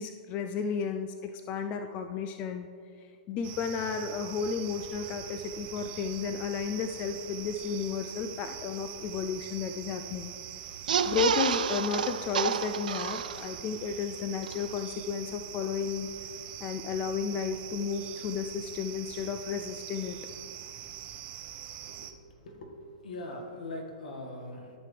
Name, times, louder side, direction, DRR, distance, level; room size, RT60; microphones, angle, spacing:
voice 1, 0.0-2.7 3.0-10.3 11.1-16.1 16.6-20.2, left 6 dB, 30° left, 7 dB, 0.4 m, -33 dB
sound 1, 3.4-22.1, right 10 dB, 30° right, 0.6 m, -43 dB
sound 2, 10.7-13.7 14.1-14.2 14.4-14.5, right 8 dB, 80° right, 0.3 m, -30 dB
voice 2, 22.4-22.7 23.0-24.7, left 1 dB, 75° left, 1 dB, 1.7 m, -41 dB
13.5 x 5.8 x 3.3 m, 2.4 s
hypercardioid pair, 130°, 4 cm